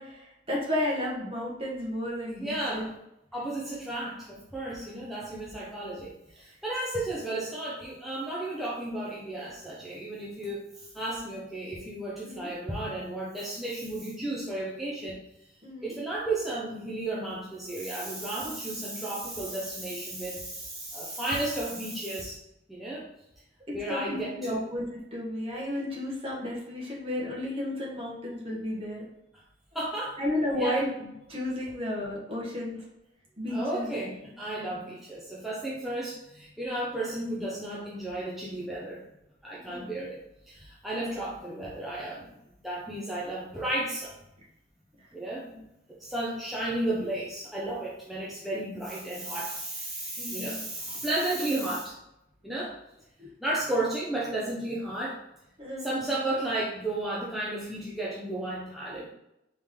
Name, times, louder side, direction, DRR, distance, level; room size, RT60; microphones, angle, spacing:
voice 1, 0.0-2.9 12.2-12.5 15.6-15.9 23.7-24.8 25.1-29.0 30.2-30.9 31.3-32.8 33.4-33.9 39.5-39.9 45.5-45.6 50.2-50.6 53.2-53.3 55.6-55.9, left 1 dB, 30° right, -4 dB, 1.4 m, -33 dB
voice 2, 2.3-2.9 3.3-15.2 15.8-22.4 22.7-23.1 23.7-24.6 29.7-30.2 30.5-31.1 33.5-39.0 39.4-40.2 40.5-42.4 42.6-44.1 45.1-45.5 46.0-51.9 52.4-52.8 53.4-55.2 55.8-59.1, right 1 dB, ahead, -7 dB, 0.6 m, -33 dB
4.3 x 3.7 x 3.1 m, 0.86 s
head